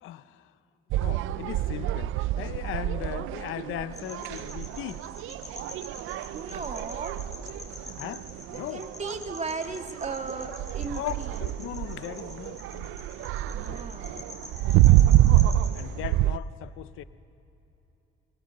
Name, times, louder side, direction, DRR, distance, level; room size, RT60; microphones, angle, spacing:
voice 1, 0.0-0.4 1.0-5.0 8.0-8.9 10.9-12.9 13.6-14.2 15.7-17.0, left 13 dB, 90° left, 14 dB, 0.7 m, -38 dB
sound 1, 0.9-16.4, right 14 dB, 90° right, 0.5 m, -27 dB
sound 2, 3.9-15.8, left 2 dB, 15° left, 6.5 m, -46 dB
voice 2, 6.3-7.3 8.7-11.3 13.5-14.3, right 4 dB, 35° right, 5 dB, 2.2 m, -36 dB
23.5 x 23.0 x 7.7 m, 3.0 s
cardioid pair, 90°, 20 cm